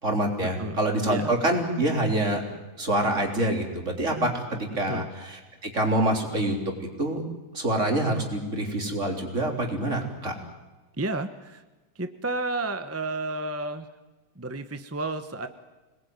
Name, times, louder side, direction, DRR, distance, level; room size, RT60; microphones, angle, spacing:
voice 1, 0.0-2.4 2.8-5.4 5.7-7.2 7.5-10.3, right 1 dB, 35° right, 2 dB, 4.0 m, -26 dB
voice 2, 11.0-11.6 11.9-13.9 14.4-15.5, right 2 dB, 15° right, 8 dB, 0.6 m, -31 dB
26.0 x 20.5 x 9.5 m, 1.2 s
omnidirectional pair, 2.1 m